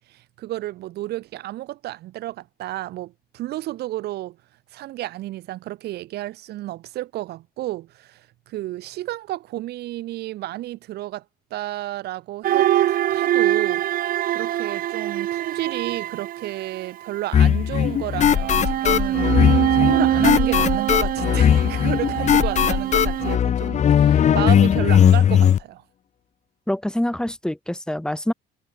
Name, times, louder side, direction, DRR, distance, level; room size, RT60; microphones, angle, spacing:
voice 1, 0.0-4.4 4.7-11.2 11.5-12.7 13.1-19.3 19.7-25.8, right 15 dB, 75° right, 1.4 m, -32 dB
sound 1, 12.4-17.2 18.1-23.4, right 13 dB, 55° right, 0.7 m, -23 dB
sound 2, 17.3-25.6, left 9 dB, 45° left, 1.0 m, -18 dB
voice 2, 26.7-28.3, left 1 dB, 5° left, 2.3 m, -25 dB
cardioid pair, 110°, 17 cm